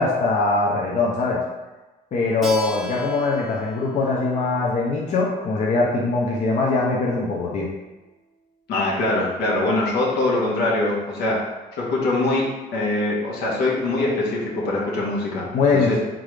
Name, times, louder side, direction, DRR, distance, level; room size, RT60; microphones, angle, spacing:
voice 1, 0.0-1.4 2.1-7.7 15.5-16.0, left 3 dB, 45° left, -3 dB, 0.7 m, -22 dB
Keyboard (musical), 2.4-7.7, left 1 dB, ahead, 0.9 m, -38 dB
voice 2, 8.7-11.4 11.7-12.5 12.7-16.0, left 2 dB, 75° left, -4 dB, 1.2 m, -23 dB
3.7 x 3.6 x 3.3 m, 1.1 s
cardioid pair, 110°, 17 cm